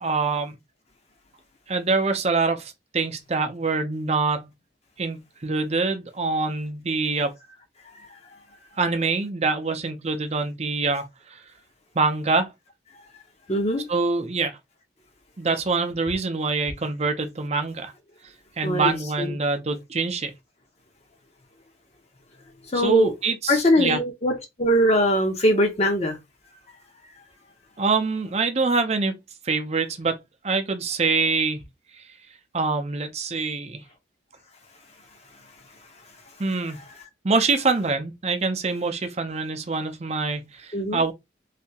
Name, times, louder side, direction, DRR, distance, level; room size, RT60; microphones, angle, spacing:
voice 1, 0.0-0.6 1.7-4.5 5.0-7.3 8.8-11.0 11.3-11.4 11.9-12.5 13.9-14.6 15.4-17.9 18.6-20.3 22.7-24.0 27.8-29.2 29.4-30.2 30.4-31.7 32.5-33.8 36.4-36.8 37.2-41.1, right 4 dB, 35° right, 0.6 m, -25 dB
voice 2, 13.5-13.9 18.6-19.3 22.7-23.1 23.5-26.2 40.7-41.0, equal, 35° left, 0.7 m, -22 dB
3.3 x 2.8 x 2.8 m
head